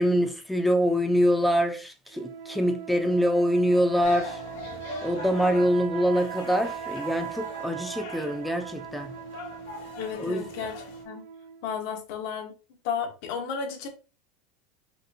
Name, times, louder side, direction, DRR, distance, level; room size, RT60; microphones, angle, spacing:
voice 1, 0.0-4.4 5.0-9.1 10.2-10.5, equal, ahead, 0.6 m, -24 dB
sound 1, 2.1-11.8, right 9 dB, 80° right, 0.7 m, -40 dB
sound 2, 4.0-11.0, left 3 dB, 85° left, 1.7 m, -42 dB
voice 2, 10.0-11.2 11.6-12.5 12.8-13.9, left 6 dB, 60° left, 1.2 m, -33 dB
5.1 x 2.6 x 2.8 m
supercardioid pair, 155°, 0 cm